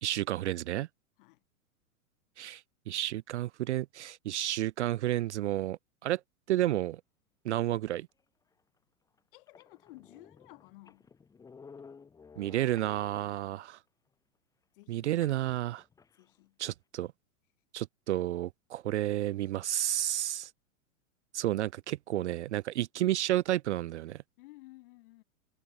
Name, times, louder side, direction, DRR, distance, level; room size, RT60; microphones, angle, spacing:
voice 1, 0.0-0.9 2.4-2.6 2.9-6.2 6.5-7.0 7.4-8.1 12.4-13.8 14.9-15.8 16.6-17.1 17.7-20.5 21.3-24.2, right 14 dB, 55° right, 0.5 m, -31 dB
sound 1, 8.5-8.6 9.2-9.3 9.5-13.5 15.2-16.3, left 5 dB, 10° left, 3.3 m, -54 dB
voice 2, 9.3-11.1 14.7-15.2 16.1-16.6 24.4-25.2, left 21 dB, 40° left, 5.0 m, -54 dB
supercardioid pair, 170°, 42 cm